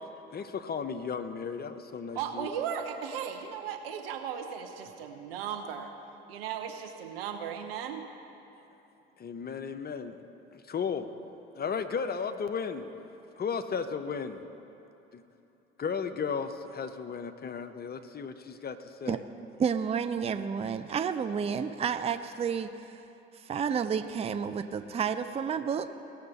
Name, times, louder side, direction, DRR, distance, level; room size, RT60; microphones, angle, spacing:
voice 1, 0.3-2.5 9.2-10.2 10.5-11.1 11.5-12.8 13.4-14.5 15.1-15.2 15.8-19.2, left 6 dB, 30° left, 9 dB, 0.7 m, -34 dB
voice 2, 2.1-5.9 6.3-8.0, right 8 dB, 80° right, 4 dB, 0.9 m, -36 dB
voice 3, 19.6-23.0 23.4-25.9, right 7 dB, 20° right, 11 dB, 0.5 m, -30 dB
17.5 x 6.5 x 4.1 m, 2.9 s
hypercardioid pair, 55°, 29 cm